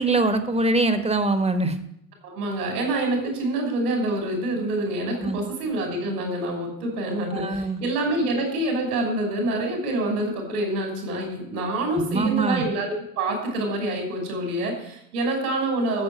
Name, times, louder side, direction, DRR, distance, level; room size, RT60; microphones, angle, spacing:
voice 1, 0.0-1.8 5.2-5.4 7.3-7.8 12.1-12.6, right 2 dB, 15° right, 8 dB, 1.8 m, -23 dB
voice 2, 2.2-16.0, right 1 dB, 75° right, 3 dB, 6.0 m, -26 dB
12.5 x 7.7 x 9.0 m, 0.76 s
hypercardioid pair, 75°, 46 cm